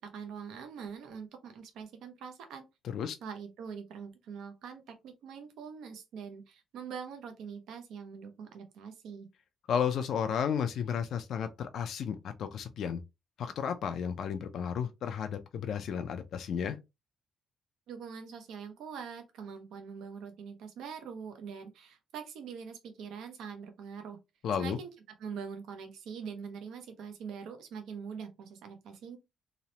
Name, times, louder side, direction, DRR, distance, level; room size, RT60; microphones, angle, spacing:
voice 1, 0.0-2.6 3.2-9.3 17.9-24.2 24.6-24.9 25.2-29.2, right 6 dB, 80° right, 0.6 m, -43 dB
voice 2, 2.8-3.2 9.7-13.0 13.4-16.8 24.4-24.8, left 7 dB, 70° left, 0.3 m, -33 dB
2.9 x 2.0 x 2.7 m
cardioid pair, 90°, 0 cm